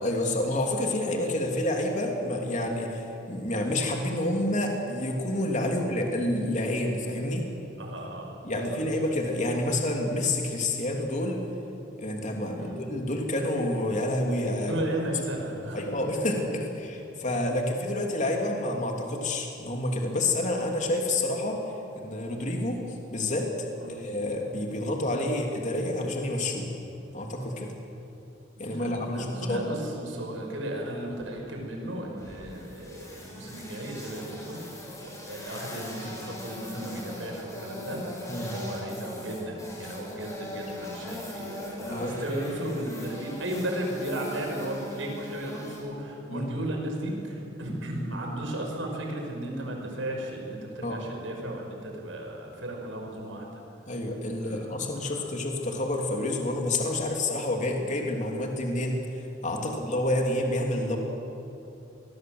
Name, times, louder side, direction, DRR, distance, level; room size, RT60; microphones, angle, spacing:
voice 1, 0.0-7.4 8.4-11.4 12.0-14.7 15.7-21.6 22.0-22.8 23.1-23.5 23.9-26.7 27.1-27.7 28.6-29.6 38.3-38.5 39.8-39.9 41.8-42.2 46.3-46.5 50.8-51.0 53.9-59.0 59.4-61.0, left 1 dB, 40° left, 1 dB, 3.0 m, -28 dB
voice 2, 7.8-8.8 12.5-12.8 14.7-15.9 23.8-24.0 28.6-34.6 35.0-38.0 38.5-53.5 54.4-55.3 59.6-59.7, right 1 dB, 90° right, 1 dB, 6.1 m, -35 dB
sound 1, 32.2-45.8, left 1 dB, 15° left, 7.1 m, -40 dB
26.5 x 21.5 x 8.0 m, 2.9 s
head